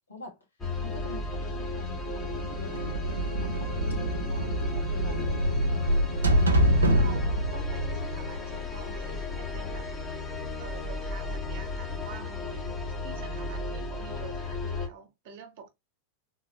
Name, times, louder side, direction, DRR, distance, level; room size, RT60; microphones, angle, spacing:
voice 1, 0.1-0.4 0.8-3.0 3.4-3.7 4.3-4.5 4.7-5.6, left 3 dB, 75° left, 1.4 m, -45 dB
sound 1, 0.6-14.9, left 2 dB, 15° left, 1.1 m, -35 dB
sound 2, 2.1-8.9, equal, 75° right, 0.6 m, -26 dB
voice 2, 4.3-4.8 6.6-9.9 10.6-15.7, right 5 dB, 50° right, 1.1 m, -46 dB
3.6 x 2.7 x 2.8 m
figure-of-eight pair, 90°, 0 cm